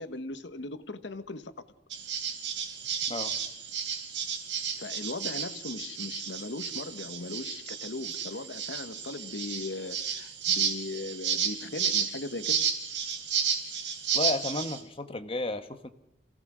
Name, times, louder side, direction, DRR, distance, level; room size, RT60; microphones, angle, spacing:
voice 1, 0.0-1.5 4.8-12.7, left 2 dB, 80° left, 1.2 m, -38 dB
sound 1, 1.9-14.8, right 7 dB, 80° right, 3.4 m, -32 dB
voice 2, 14.1-15.9, left 2 dB, 30° left, 1.2 m, -32 dB
27.0 x 17.0 x 6.2 m
head